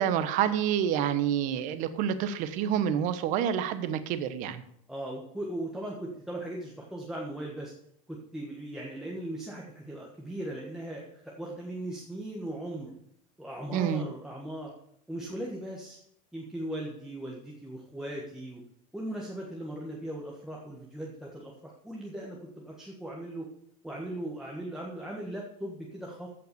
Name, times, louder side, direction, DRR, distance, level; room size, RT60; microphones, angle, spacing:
voice 1, 0.0-4.6 13.7-14.1, right 9 dB, 45° right, 12 dB, 1.1 m, -28 dB
voice 2, 4.9-7.7 8.1-12.9 13.4-14.7 15.1-16.0 16.3-18.6 18.9-23.5 23.8-26.3, right 1 dB, 5° right, -3 dB, 1.5 m, -38 dB
14.5 x 5.8 x 6.8 m, 0.71 s
supercardioid pair, 155°, 18 cm